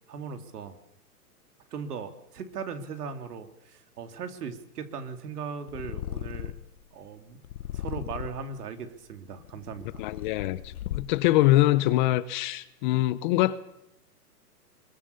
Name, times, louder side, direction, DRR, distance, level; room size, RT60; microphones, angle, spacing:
voice 1, 0.1-0.8 1.7-6.5 6.9-7.4 7.7-10.0, right 6 dB, 70° right, 3.2 m, -38 dB
Purr, 5.7-6.8 7.4-8.5 9.2-11.3, left 12 dB, 60° left, 1.2 m, -37 dB
voice 2, 10.0-13.6, left 16 dB, 30° left, 0.8 m, -24 dB
22.5 x 22.5 x 6.9 m
hypercardioid pair, 145°, 47 cm